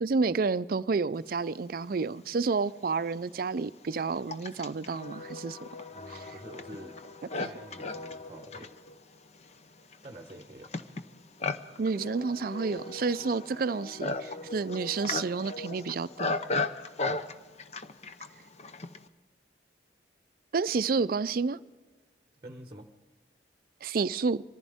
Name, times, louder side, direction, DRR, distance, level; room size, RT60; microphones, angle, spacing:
voice 1, 0.0-5.7 6.1-6.3 7.4-7.5 11.8-16.4 20.5-21.6 23.8-24.4, right 4 dB, 50° right, 0.4 m, -30 dB
Livestock farm animals working animals, 2.3-2.4 3.1-19.1, left 3 dB, 35° left, 0.7 m, -37 dB
voice 2, 5.9-7.0 7.4-8.7 10.0-10.7 17.0-17.2 22.4-22.9, right 1 dB, 25° right, 1.1 m, -47 dB
24.5 x 15.0 x 3.6 m
head